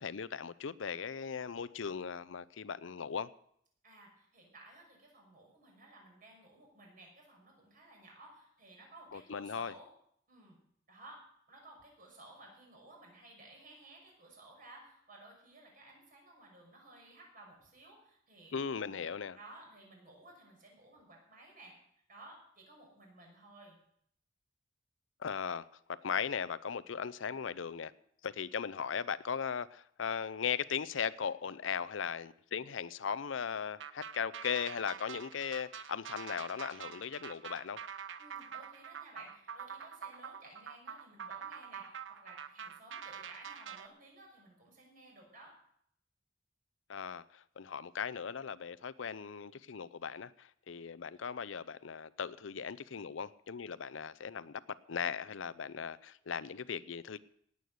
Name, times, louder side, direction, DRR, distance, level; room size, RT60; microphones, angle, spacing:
voice 1, 0.0-3.3 9.1-9.7 18.5-19.4 25.2-27.9 28.2-37.8 46.9-57.2, left 7 dB, 75° left, 18 dB, 0.6 m, -38 dB
voice 2, 3.8-9.9 10.3-10.6 10.9-11.2 11.5-19.0 19.4-21.7 22.1-23.8 38.2-45.5, right 2 dB, 45° right, 0 dB, 6.1 m, -56 dB
sound 1, 33.8-43.9, right 7 dB, 70° right, 0.8 m, -46 dB
18.5 x 8.4 x 6.5 m, 0.68 s
head